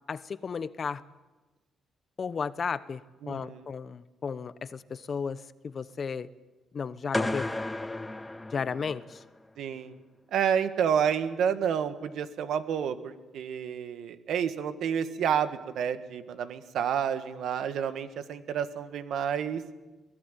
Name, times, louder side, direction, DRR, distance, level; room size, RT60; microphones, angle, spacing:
voice 1, 0.1-1.0 2.2-6.3 6.7-7.5 8.5-9.2, left 6 dB, 45° left, 15 dB, 1.0 m, -34 dB
voice 2, 3.2-3.6 9.6-9.9 10.3-19.6, right 8 dB, 75° right, 10 dB, 1.6 m, -29 dB
sound 1, 7.1-9.3, left 2 dB, 10° left, 0.8 m, -33 dB
23.0 x 17.0 x 9.2 m, 1.2 s
cardioid pair, 90°, 0 cm